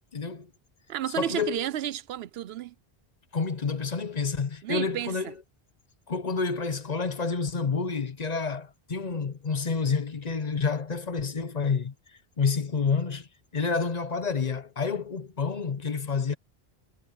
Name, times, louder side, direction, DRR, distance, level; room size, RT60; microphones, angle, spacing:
voice 1, 0.1-0.5 1.2-1.6 3.3-5.3 6.1-11.9 12.4-13.3 13.5-16.3, left 5 dB, 45° left, 0.9 m, -29 dB
voice 2, 0.9-2.7 4.6-5.3, right 11 dB, 80° right, 0.8 m, -32 dB
omnidirectional pair, 1.0 m